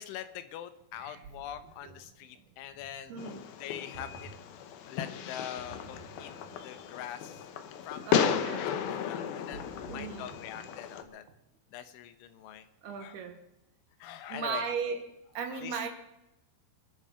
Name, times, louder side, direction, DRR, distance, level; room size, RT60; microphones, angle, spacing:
voice 1, 0.0-4.3 4.9-6.3 6.6-7.5 7.9-8.7 9.0-11.3 11.7-12.7 13.0-13.2 14.0-14.7 15.5-15.8, left 11 dB, 85° left, 11 dB, 3.5 m, -43 dB
Ocean, 0.8-11.6, right 6 dB, 85° right, 1.7 m, -54 dB
voice 2, 3.1-3.4 8.1-8.7 9.9-10.3 12.8-13.4 14.3-15.0 15.3-15.9, right 6 dB, 70° right, 6 dB, 2.9 m, -36 dB
Fireworks, 3.2-11.0, left 8 dB, 70° left, 2.4 m, -34 dB
25.5 x 8.9 x 5.7 m, 0.90 s
omnidirectional pair, 5.4 m